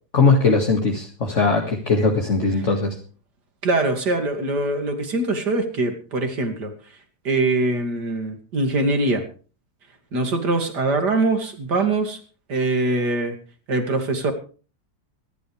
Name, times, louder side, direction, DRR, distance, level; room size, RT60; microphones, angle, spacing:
voice 1, 0.1-3.0, left 4 dB, 45° left, 1 dB, 2.3 m, -19 dB
voice 2, 3.6-6.7 7.2-9.2 10.1-12.2 12.5-13.3 13.7-14.3, right 2 dB, 80° right, 5 dB, 3.1 m, -23 dB
23.5 x 11.5 x 3.4 m, 0.38 s
omnidirectional pair, 1.8 m